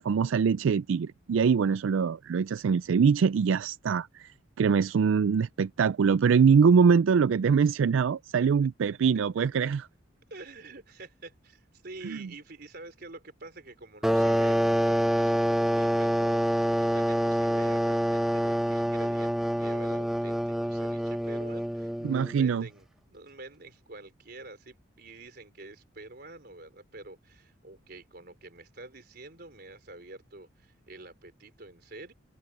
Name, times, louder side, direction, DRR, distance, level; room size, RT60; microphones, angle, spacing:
voice 1, 0.0-9.8 12.1-12.2 22.0-22.6, right 6 dB, 85° right, 0.4 m, -23 dB
voice 2, 10.3-32.1, right 2 dB, 55° right, 3.9 m, -47 dB
sound 1, 14.0-22.4, equal, ahead, 0.9 m, -26 dB
head